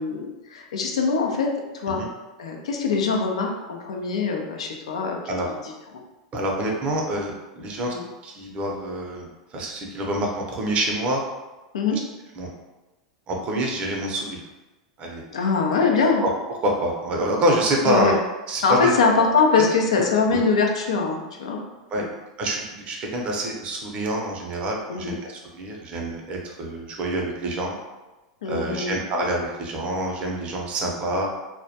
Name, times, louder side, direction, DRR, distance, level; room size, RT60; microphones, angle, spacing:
voice 1, 0.0-1.5 1.7-2.0 2.4-5.2 5.5-5.6 7.9-8.0 11.7-12.0 15.3-16.3 17.8-18.2 18.6-21.6 22.0-22.1 24.9-25.2 28.4-29.0, left 4 dB, 85° left, 1 dB, 0.4 m, -22 dB
voice 2, 6.3-7.9 8.2-11.2 12.3-12.5 13.3-14.4 15.0-15.2 16.2-16.3 16.6-18.2 18.5-18.9 20.3-20.4 21.9-22.0 22.4-27.8 28.5-31.3, right 1 dB, 40° right, 0 dB, 0.6 m, -26 dB
2.1 x 2.1 x 2.8 m, 1.1 s
hypercardioid pair, 105°, 3 cm